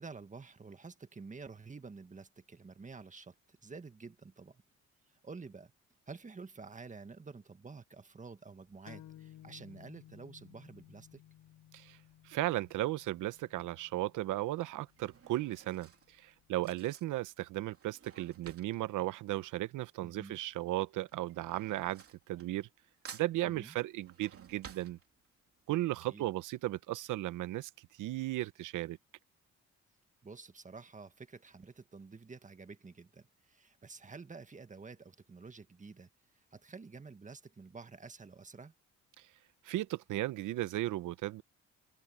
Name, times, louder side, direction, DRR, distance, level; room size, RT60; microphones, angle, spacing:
voice 1, 0.0-4.6 5.2-5.7 6.1-11.2 20.0-20.4 23.4-23.7 26.1-26.3 30.2-36.1 36.5-38.7, right 4 dB, 25° right, 1.7 m, -50 dB
sound 1, 8.9-16.4, left 12 dB, 80° left, 7.7 m, -58 dB
voice 2, 12.2-22.7 23.1-25.0 25.7-27.7 28.0-29.0 39.6-41.4, right 16 dB, 85° right, 1.0 m, -35 dB
Drawer open or close / Cutlery silverware, 13.0-13.4 14.3-20.2 20.4-22.8 23.0-25.6 26.0-26.1 26.3-26.4, right 7 dB, 50° right, 3.1 m, -55 dB
open air
cardioid pair, 90°, 30 cm